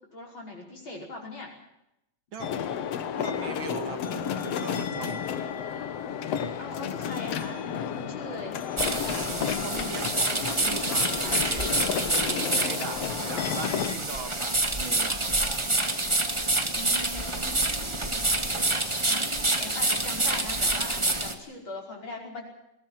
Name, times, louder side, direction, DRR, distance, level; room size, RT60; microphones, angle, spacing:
voice 1, 0.1-1.5 6.6-8.6 16.7-18.1 18.5-18.8 19.1-22.5, left 2 dB, 40° left, 0 dB, 6.0 m, -40 dB
sound 1, 2.4-14.0, left 8 dB, 65° left, 2.2 m, -32 dB
voice 2, 3.2-5.2 9.1-11.7 12.2-13.0 13.3-15.3, right 6 dB, 50° right, 8 dB, 2.2 m, -39 dB
sound 2, 8.8-21.3, right 2 dB, 15° right, 1.1 m, -27 dB
22.0 x 18.0 x 7.6 m, 0.84 s
omnidirectional pair, 3.3 m